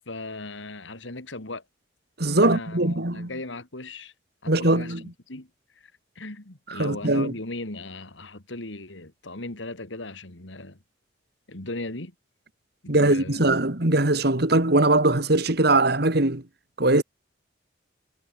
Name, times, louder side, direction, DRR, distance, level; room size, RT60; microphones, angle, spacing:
voice 1, 0.1-1.6 2.4-4.1 4.4-4.9 5.3-5.5 5.8-10.8 11.5-12.1 12.8-13.5, left 2 dB, 80° left, 2.9 m, -37 dB
voice 2, 2.2-3.3 4.5-5.0 6.7-7.3 12.9-16.4 16.8-17.0, right 2 dB, 55° right, 2.4 m, -21 dB
head